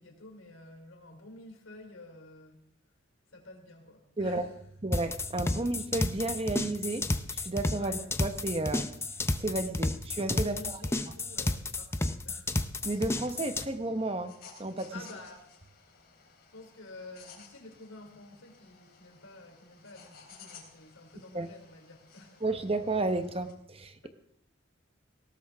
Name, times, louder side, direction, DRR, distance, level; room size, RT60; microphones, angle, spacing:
voice 1, 0.0-2.6 3.3-4.6 7.8-8.1 10.4-12.5 14.9-15.5 16.5-22.4 24.0-24.1, left 2 dB, 85° left, 3 dB, 3.6 m, -50 dB
voice 2, 4.2-4.5 4.8-7.1 7.3-8.9 9.3-10.7 12.8-14.3 14.6-15.0 21.3-21.5 22.4-24.1, right 2 dB, 30° right, 8 dB, 1.1 m, -32 dB
sound 1, 4.9-13.7, left 2 dB, 15° left, 0.6 m, -31 dB
sound 2, 12.8-23.5, left 5 dB, 50° left, 3.7 m, -56 dB
19.5 x 17.5 x 3.6 m, 0.68 s
head